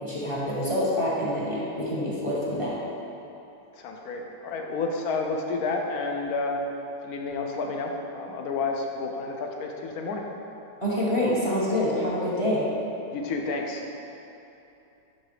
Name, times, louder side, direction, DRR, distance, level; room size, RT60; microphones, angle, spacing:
voice 1, 0.0-2.7 10.8-12.7, left 1 dB, 20° left, -7 dB, 0.9 m, -26 dB
voice 2, 3.7-6.6 7.0-10.2 13.1-13.8, left 3 dB, 65° left, 2 dB, 1.0 m, -30 dB
11.0 x 4.5 x 3.3 m, 2.9 s
omnidirectional pair, 2.1 m